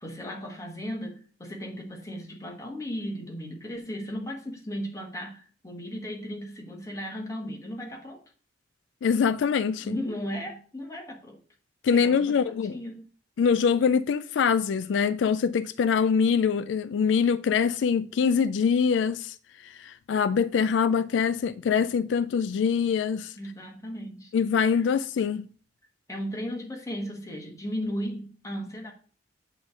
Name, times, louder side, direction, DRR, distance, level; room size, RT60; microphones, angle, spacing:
voice 1, 0.0-8.2 9.8-11.4 11.9-13.1 23.4-24.3 26.1-28.9, equal, 15° left, 1.5 m, -36 dB
voice 2, 9.0-10.0 11.8-12.8 13.4-19.4 19.6-23.3 24.3-25.5, left 6 dB, 80° left, 0.3 m, -24 dB
8.1 x 3.3 x 6.4 m
head